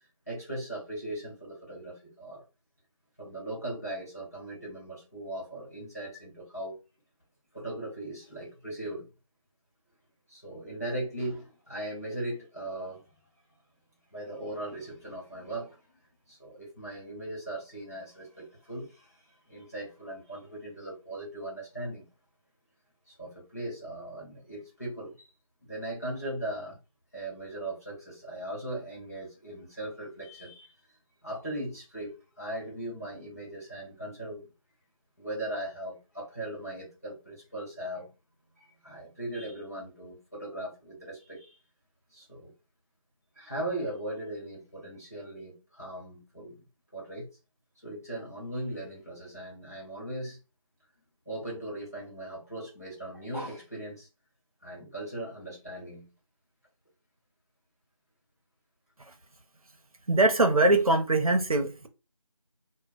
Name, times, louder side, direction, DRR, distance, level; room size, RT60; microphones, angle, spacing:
voice 1, 0.3-2.4 3.2-6.8 7.5-9.1 10.3-13.0 14.1-15.8 16.3-19.2 19.5-22.0 23.1-25.3 25.6-26.8 27.1-30.7 31.2-34.5 35.2-38.1 38.6-41.6 42.1-42.5 43.4-46.6 46.9-47.3 47.8-50.4 51.3-54.1 54.6-56.1, right 1 dB, 25° left, 1.2 m, -38 dB
voice 2, 60.1-61.9, right 2 dB, 80° right, 0.7 m, -22 dB
2.2 x 2.2 x 3.8 m
figure-of-eight pair, 180°, 18 cm